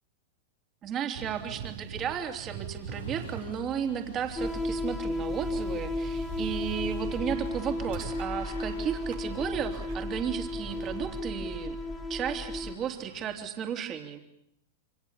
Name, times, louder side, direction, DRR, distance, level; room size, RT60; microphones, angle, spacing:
voice 1, 0.8-11.8 12.1-14.2, right 8 dB, 35° right, 5 dB, 3.3 m, -34 dB
sound 1, 1.1-11.2, right 8 dB, 65° right, 2.6 m, -44 dB
sound 2, 2.9-13.5, left 5 dB, 85° left, 4.5 m, -50 dB
sound 3, 4.4-12.8, left 2 dB, 5° left, 1.9 m, -34 dB
28.0 x 25.0 x 7.2 m, 0.78 s
hypercardioid pair, 105°, 0 cm